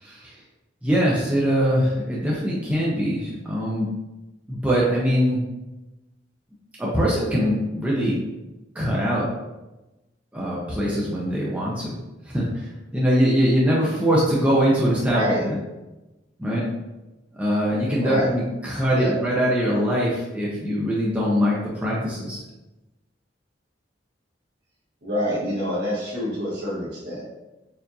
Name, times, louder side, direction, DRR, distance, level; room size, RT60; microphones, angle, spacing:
voice 1, 0.8-3.9 4.5-5.4 6.8-8.2 8.8-9.3 10.3-12.0 12.3-12.7 12.9-15.5 16.4-16.6 17.4-22.4, equal, 10° right, -6 dB, 0.5 m, -22 dB
voice 2, 15.0-15.5 17.9-18.3 19.0-19.1 25.0-27.2, equal, 65° right, -6 dB, 1.4 m, -26 dB
4.5 x 2.5 x 2.6 m, 1.0 s
head